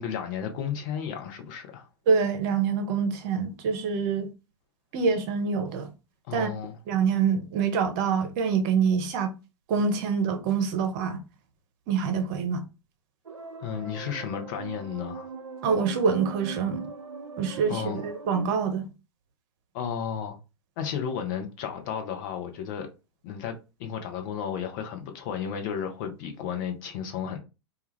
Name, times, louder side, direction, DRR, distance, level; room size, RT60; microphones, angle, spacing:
voice 1, 0.0-1.9 6.3-6.7 13.6-15.3 17.7-18.0 19.7-20.4 20.8-22.9 23.2-27.4, left 8 dB, 45° left, 0.7 m, -33 dB
voice 2, 2.1-4.3 4.9-5.9 6.3-6.5 6.9-9.3 9.7-11.2 11.9-12.6 15.6-16.9 17.4-18.9, right 6 dB, 40° right, 0.7 m, -25 dB
sound 1, 13.3-18.5, right 5 dB, 85° right, 0.4 m, -39 dB
2.3 x 2.3 x 3.1 m
figure-of-eight pair, 95°, 15 cm